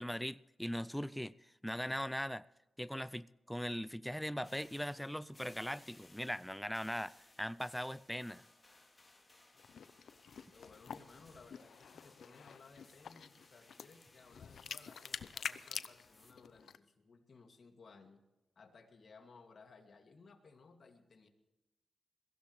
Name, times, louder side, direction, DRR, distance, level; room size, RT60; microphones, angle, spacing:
voice 1, 0.0-1.3 1.6-2.4 2.8-8.4, equal, 5° left, 0.5 m, -40 dB
sound 1, 4.4-16.3, left 2 dB, 30° left, 2.9 m, -64 dB
sound 2, 9.5-16.8, left 7 dB, 80° left, 0.6 m, -47 dB
voice 2, 10.5-18.2 18.6-21.3, left 4 dB, 60° left, 2.4 m, -60 dB
22.0 x 16.0 x 3.3 m
cardioid pair, 55°, 0 cm